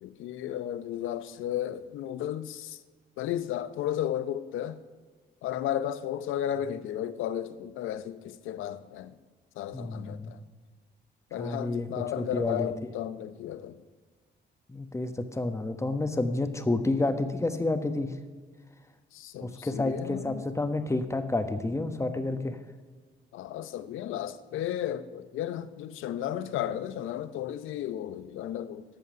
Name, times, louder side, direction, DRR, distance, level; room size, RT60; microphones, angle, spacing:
voice 1, 0.0-2.8 3.2-4.8 5.4-9.1 9.6-10.4 11.3-13.8 19.1-20.4 23.3-28.8, left 11 dB, 85° left, 0.8 m, -34 dB
voice 2, 9.7-10.3 11.3-11.9 12.2-12.7 14.7-18.1 19.4-22.6, left 2 dB, 15° left, 1.3 m, -30 dB
14.5 x 5.7 x 9.6 m
cardioid pair, 90°, 20 cm